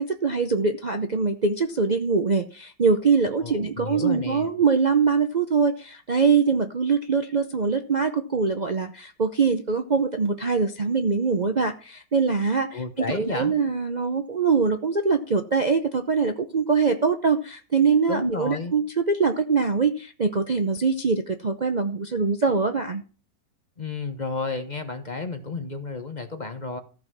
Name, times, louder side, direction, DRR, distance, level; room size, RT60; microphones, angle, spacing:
voice 1, 0.0-23.0, right 5 dB, 75° right, 7 dB, 0.4 m, -23 dB
voice 2, 3.4-4.5 12.7-13.5 18.1-18.7 23.8-26.8, left 3 dB, 35° left, 7 dB, 0.8 m, -31 dB
14.5 x 5.6 x 6.2 m, 0.36 s
omnidirectional pair, 2.0 m